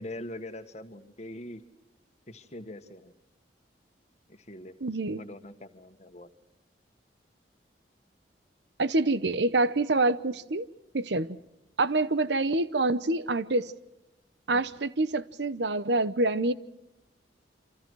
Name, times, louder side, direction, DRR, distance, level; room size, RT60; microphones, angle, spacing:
voice 1, 0.0-1.6 2.3-3.1 4.3-4.7 5.2-6.3 14.5-14.7, left 1 dB, 40° left, 1.7 m, -42 dB
voice 2, 4.8-5.2 8.8-10.7 10.9-11.4 11.8-13.7 14.5-16.5, right 2 dB, 70° right, 0.9 m, -26 dB
28.5 x 26.0 x 4.7 m
head